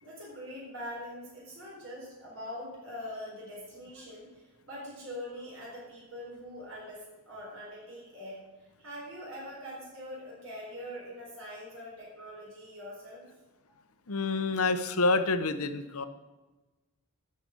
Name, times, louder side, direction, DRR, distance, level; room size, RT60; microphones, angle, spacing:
voice 1, 0.0-13.3, equal, 65° right, -4 dB, 4.0 m, -43 dB
voice 2, 14.1-16.0, left 3 dB, 80° left, 10 dB, 0.9 m, -28 dB
9.7 x 6.7 x 8.4 m, 1.1 s
head